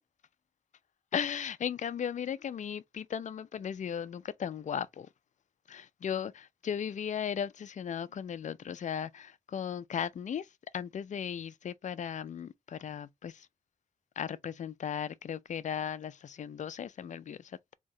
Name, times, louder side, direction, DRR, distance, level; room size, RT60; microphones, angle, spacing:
voice 1, 1.1-5.1 5.7-10.5 10.7-13.5 14.2-17.7, left 8 dB, 60° left, 0.4 m, -36 dB
3.6 x 2.8 x 3.0 m
wide cardioid pair, 95°, 14 cm